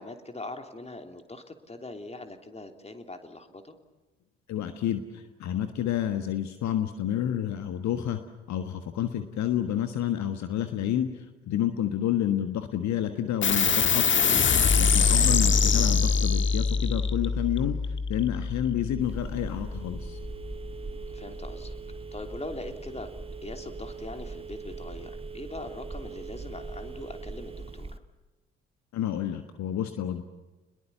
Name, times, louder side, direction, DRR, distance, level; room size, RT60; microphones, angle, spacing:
voice 1, 0.0-3.7 15.0-15.3 21.1-21.8 22.1-23.1 23.4-28.0, left 2 dB, 20° left, 6 dB, 3.2 m, -41 dB
voice 2, 4.5-8.2 8.5-14.2 14.8-20.2 28.9-30.2, left 10 dB, 55° left, 9 dB, 1.5 m, -29 dB
sound 1, 13.4-20.3, left 5 dB, 35° left, 1.5 m, -24 dB
Telephone, 19.0-28.0, right 4 dB, 15° right, 1.4 m, -40 dB
30.0 x 21.5 x 7.0 m, 1.2 s
figure-of-eight pair, 40°, 33 cm